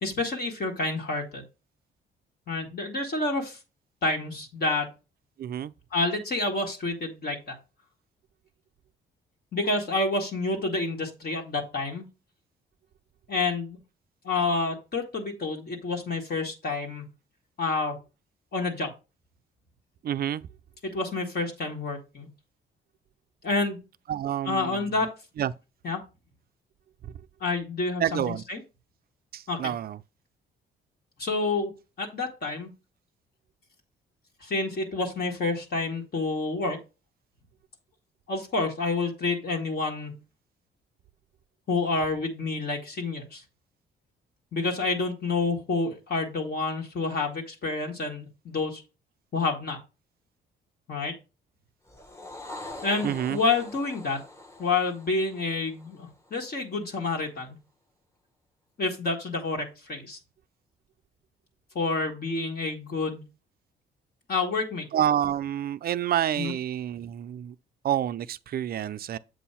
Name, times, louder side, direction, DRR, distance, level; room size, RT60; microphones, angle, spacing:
voice 1, 0.0-1.4 2.5-3.6 4.0-4.9 5.9-7.5 9.5-12.0 13.3-13.8 14.2-17.0 17.6-17.9 18.5-18.9 20.8-22.3 23.4-23.8 24.4-25.1 25.8-26.0 27.4-28.6 29.5-29.7 31.2-32.7 34.4-36.8 38.3-40.2 41.7-43.4 44.5-48.8 49.3-49.8 50.9-51.1 52.8-54.2 54.6-57.6 58.8-60.2 61.7-63.3 64.3-64.9 66.4-66.5, left 3 dB, 50° left, 1.6 m, -28 dB
voice 2, 5.4-5.7 20.0-20.4 24.1-24.8 25.4-25.5 27.0-27.1 28.0-28.4 29.3-30.0 53.0-53.4 64.9-67.5 67.8-69.2, right 10 dB, 50° right, 0.4 m, -28 dB
sound 1, 51.9-56.5, left 2 dB, 15° left, 1.0 m, -44 dB
7.7 x 2.7 x 5.7 m
cardioid pair, 90°, 20 cm